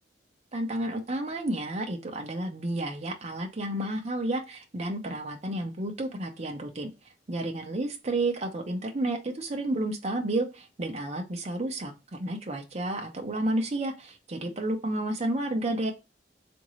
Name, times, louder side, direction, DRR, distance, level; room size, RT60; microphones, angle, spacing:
voice 1, 0.5-6.9 7.3-15.9, right 1 dB, 40° right, 3 dB, 0.7 m, -31 dB
3.7 x 2.6 x 3.0 m, 0.25 s
head